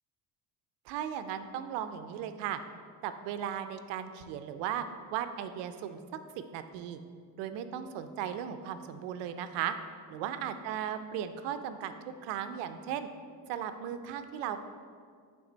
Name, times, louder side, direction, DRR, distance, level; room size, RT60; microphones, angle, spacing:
voice 1, 0.9-2.6 3.0-4.8 5.1-6.0 6.4-7.0 7.4-9.7 10.1-13.1 13.5-14.6, right 9 dB, 80° right, 10 dB, 0.6 m, -36 dB
9.4 x 3.5 x 3.9 m, 2.1 s
cardioid pair, 150°, 42 cm